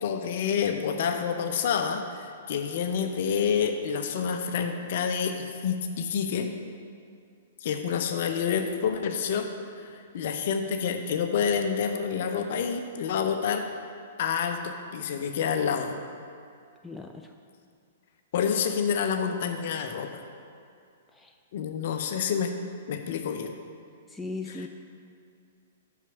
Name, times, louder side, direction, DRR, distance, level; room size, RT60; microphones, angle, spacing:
voice 1, 0.0-6.5 7.6-9.5 9.8-9.9 10.1-13.7 14.2-16.0 18.3-20.2 21.5-22.5 22.9-23.5, left 7 dB, 50° left, 6 dB, 0.6 m, -28 dB
voice 2, 16.8-17.4 21.1-21.3 24.1-24.7, left 3 dB, 5° left, 2 dB, 0.4 m, -38 dB
5.9 x 5.8 x 5.8 m, 2.4 s
figure-of-eight pair, 110°, 0 cm